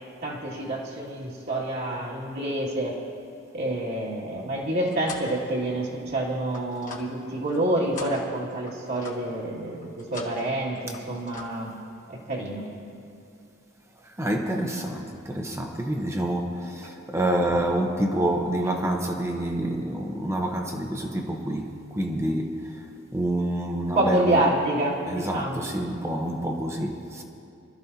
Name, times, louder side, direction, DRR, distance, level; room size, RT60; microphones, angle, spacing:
voice 1, 0.2-3.0 3.5-11.7 12.1-12.7 23.9-25.6, right 1 dB, 55° right, 2.4 m, -27 dB
sound 1, 4.4-5.4 5.8-7.6 7.9-9.4 9.8-10.5 10.7-11.5, left 4 dB, 40° left, 1.4 m, -43 dB
voice 2, 9.4-10.1 14.2-22.8 23.1-24.4 25.1-27.2, right 1 dB, 15° right, 1.0 m, -28 dB
24.5 x 13.0 x 2.9 m
head